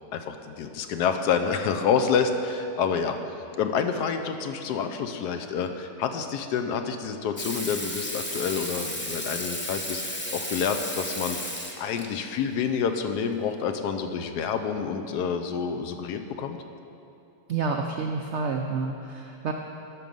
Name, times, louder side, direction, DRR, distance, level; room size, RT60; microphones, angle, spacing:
voice 1, 0.1-3.2 3.6-11.4 11.8-16.6, left 6 dB, 75° left, 7 dB, 1.2 m, -28 dB
Water tap faucet / Sink (filling or washing), 7.4-12.1 13.6-13.7, left 1 dB, 10° left, 0.5 m, -33 dB
voice 2, 17.5-19.5, right 4 dB, 75° right, 2 dB, 0.6 m, -29 dB
12.5 x 6.2 x 5.3 m, 2.8 s
omnidirectional pair, 1.8 m